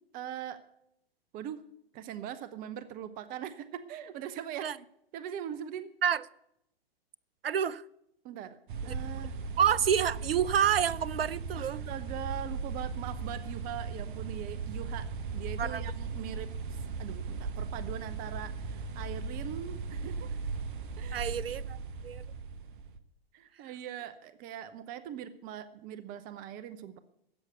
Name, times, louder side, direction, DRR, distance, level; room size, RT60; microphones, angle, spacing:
voice 1, 0.1-0.6 1.3-1.6 1.9-4.7 5.1-5.9 8.2-8.6 8.8-9.3 11.6-15.1 15.3-20.4 21.0-21.3 23.3-27.0, right 10 dB, 30° right, 0.8 m, -41 dB
voice 2, 7.4-7.8 8.8-8.9 9.6-11.8 15.6-15.8 21.1-21.8 22.0-22.2, right 8 dB, 70° right, 0.6 m, -28 dB
sound 1, 8.7-23.0, right 4 dB, 55° right, 1.1 m, -37 dB
13.0 x 8.1 x 8.2 m
figure-of-eight pair, 105°, 30 cm